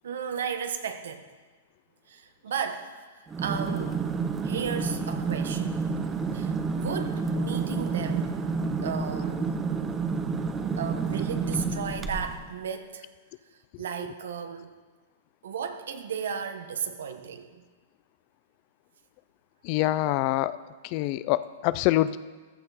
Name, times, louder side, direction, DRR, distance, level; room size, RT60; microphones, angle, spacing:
voice 1, 0.0-1.3 2.1-4.0 4.4-5.8 6.3-8.4 8.8-9.6 10.8-13.1 13.8-14.7 15.4-17.6, right 7 dB, 80° right, 7 dB, 1.4 m, -35 dB
sound 1, 3.3-12.5, right 4 dB, 15° right, 0.9 m, -29 dB
voice 2, 19.6-20.6 20.8-22.2, left 16 dB, 45° left, 16 dB, 0.5 m, -25 dB
15.0 x 13.0 x 4.3 m, 1.4 s
hypercardioid pair, 140°, 0 cm